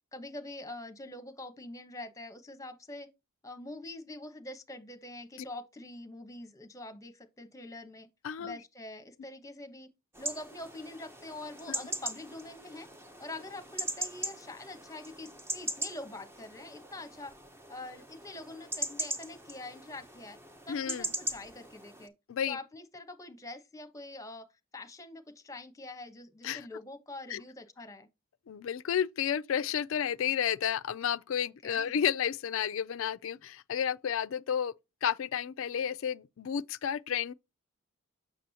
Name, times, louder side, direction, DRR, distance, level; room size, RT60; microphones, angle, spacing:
voice 1, 0.1-3.1 3.4-8.1 8.4-9.9 10.2-12.9 13.2-17.3 17.7-20.4 20.7-22.1 22.5-24.5 24.7-28.1 31.4-31.9, left 2 dB, 15° left, 1.1 m, -45 dB
voice 2, 8.2-8.6 11.7-11.8 20.7-21.1 22.3-22.6 26.4-26.7 27.3-27.4 28.5-34.7 35.0-37.3, left 8 dB, 65° left, 0.4 m, -31 dB
sound 1, 10.1-22.1, right 1 dB, 10° right, 0.8 m, -40 dB
7.5 x 6.1 x 2.8 m
head